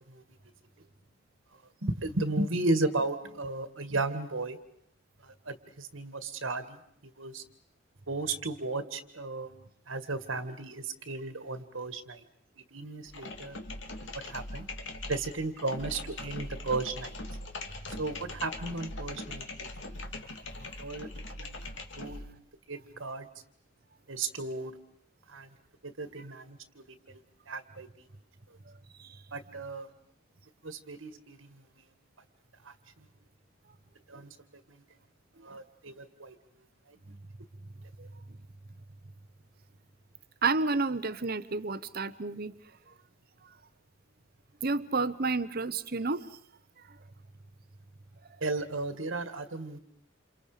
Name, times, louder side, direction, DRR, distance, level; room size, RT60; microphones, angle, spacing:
voice 1, 1.8-4.6 5.2-7.4 8.1-9.5 9.9-12.2 12.7-13.6 14.3-14.7 15.1-17.2 18.0-19.7 20.8-21.1 21.4-21.6 22.0-22.2 22.7-23.3 24.1-24.7 25.3-25.5 25.8-27.2 27.5-27.9 29.3-29.9 30.6-31.6 32.6-32.7 34.1-34.3 34.7-34.8 35.4-36.4 37.1-37.2 48.4-49.8, right 2 dB, 75° right, 9 dB, 2.0 m, -34 dB
sound 1, 13.0-22.4, left 2 dB, 65° left, 2.5 m, -41 dB
voice 2, 40.4-42.5 44.6-46.4, right 3 dB, 50° right, 14 dB, 1.0 m, -30 dB
29.0 x 28.5 x 5.1 m, 0.68 s
head